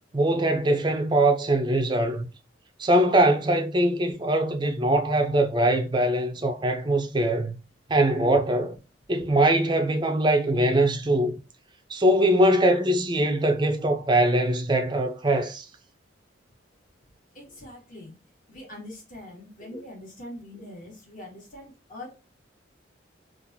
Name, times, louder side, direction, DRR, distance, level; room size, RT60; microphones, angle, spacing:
voice 1, 0.1-2.3 2.8-7.6 7.9-8.8 9.1-11.4 11.9-15.7, right 1 dB, 25° right, 0.5 m, -22 dB
voice 2, 17.3-18.1 18.5-22.2, left 1 dB, 45° left, 1.8 m, -43 dB
3.7 x 2.5 x 2.6 m
head